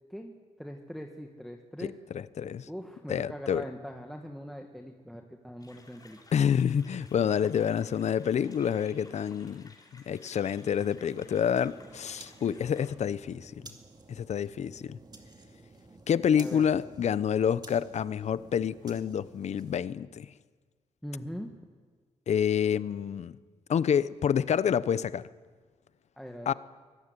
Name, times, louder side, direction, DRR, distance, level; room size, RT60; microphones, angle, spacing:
voice 1, 0.6-1.9 2.7-6.2 16.4-16.6 21.0-21.5 26.2-26.5, equal, ahead, 3 dB, 1.6 m, -41 dB
voice 2, 1.8-2.7 3.1-3.6 6.3-13.5 14.1-15.0 16.1-20.3 22.3-23.4 23.7-25.2 26.5-26.6, left 8 dB, 65° left, 17 dB, 0.7 m, -28 dB
sound 1, 5.6-12.9, left 3 dB, 30° left, 4.6 m, -57 dB
sound 2, 10.3-19.8, right 3 dB, 35° right, 2.4 m, -53 dB
24.0 x 14.5 x 9.8 m, 1.5 s
cardioid pair, 90°, 12 cm